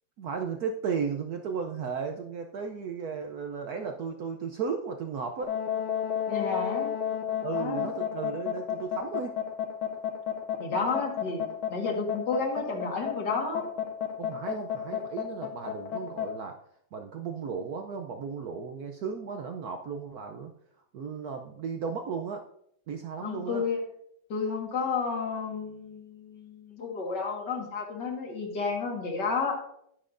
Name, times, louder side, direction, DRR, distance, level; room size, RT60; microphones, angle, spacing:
voice 1, 0.2-5.5 7.4-9.4 14.2-16.6 16.9-20.5 20.9-22.4 22.9-23.7, right 6 dB, 70° right, 5 dB, 0.9 m, -35 dB
sound 1, 5.4-16.3, left 9 dB, 80° left, 1.8 m, -31 dB
voice 2, 6.3-6.9 7.5-7.9 10.6-11.4 11.7-13.6 23.2-23.8 24.3-29.6, left 4 dB, 55° left, 1 dB, 2.3 m, -31 dB
10.5 x 10.0 x 2.6 m, 0.71 s
omnidirectional pair, 2.3 m